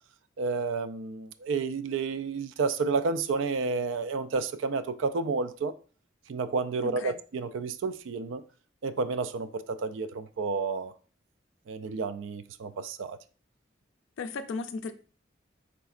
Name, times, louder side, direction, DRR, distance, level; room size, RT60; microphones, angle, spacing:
voice 1, 0.4-5.7 6.3-8.4 8.8-10.9 11.7-13.2, right 4 dB, 85° right, 0.3 m, -30 dB
voice 2, 6.8-7.2 14.2-14.9, left 4 dB, 90° left, 0.4 m, -35 dB
4.2 x 3.8 x 2.4 m
head